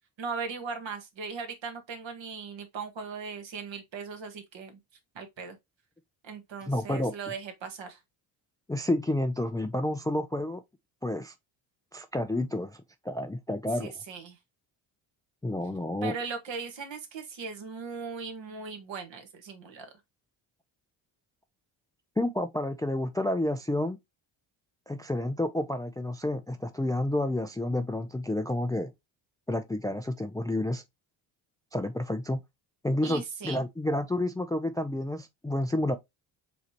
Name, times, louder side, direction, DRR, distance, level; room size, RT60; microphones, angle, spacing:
voice 1, 0.2-4.8 5.1-5.6 6.2-8.0 13.7-14.4 16.0-19.9 33.0-33.6, right 5 dB, 60° right, 1.6 m, -38 dB
voice 2, 6.7-7.1 8.7-10.6 11.0-11.3 11.9-13.9 15.4-16.1 22.2-24.0 24.9-28.9 29.5-30.8 31.7-32.4 32.8-36.0, left 1 dB, 10° left, 0.4 m, -30 dB
4.9 x 3.3 x 2.9 m
cardioid pair, 80°, 50 cm